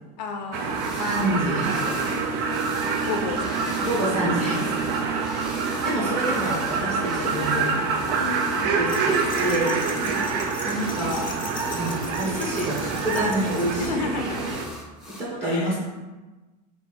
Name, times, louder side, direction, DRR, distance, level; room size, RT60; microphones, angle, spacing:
voice 1, 0.2-0.9 3.1-4.2 4.5-4.9 8.2-8.7 10.0-10.3 13.8-14.6 15.4-15.8, left 4 dB, 80° left, 4 dB, 0.7 m, -33 dB
sound 1, 0.5-14.6, right 4 dB, 55° right, 0.6 m, -26 dB
sound 2, 0.7-1.3 1.6-15.2, left 1 dB, ahead, 0.8 m, -41 dB
voice 2, 0.9-2.1 3.8-5.2 5.8-7.8 8.8-9.7 10.6-11.2 11.7-14.1 15.2-15.8, right 1 dB, 30° right, -6 dB, 1.4 m, -27 dB
sound 3, 8.9-13.9, left 5 dB, 25° left, 0.5 m, -40 dB
3.6 x 2.8 x 4.5 m, 1.2 s
supercardioid pair, 125°, 21 cm